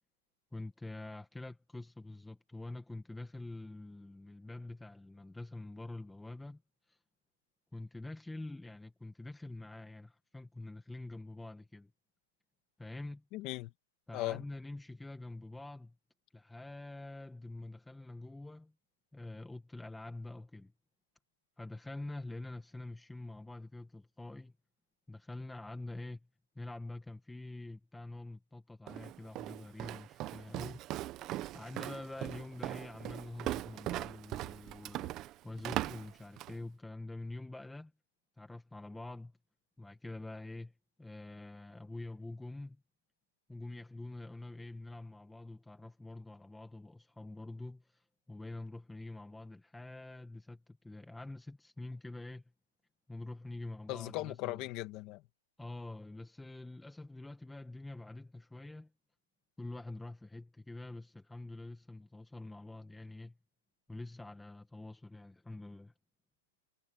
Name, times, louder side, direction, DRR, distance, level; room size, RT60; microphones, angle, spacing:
voice 1, 0.5-6.6 6.9-7.0 7.7-11.9 12.8-13.2 14.1-16.0 16.3-18.7 19.1-20.7 21.6-24.5 25.1-26.3 26.5-30.8 31.5-37.9 38.4-39.4 39.8-40.7 41.0-42.8 43.5-52.4 53.1-54.6 55.6-58.9 59.6-63.4 63.9-65.9, left 2 dB, 5° left, 1.2 m, -46 dB
voice 2, 13.3-13.7 14.1-14.4 53.9-55.2, left 18 dB, 30° left, 2.2 m, -38 dB
Walk footsteps, 28.9-36.6, right 15 dB, 25° right, 0.9 m, -40 dB
hypercardioid pair, 170°, 0 cm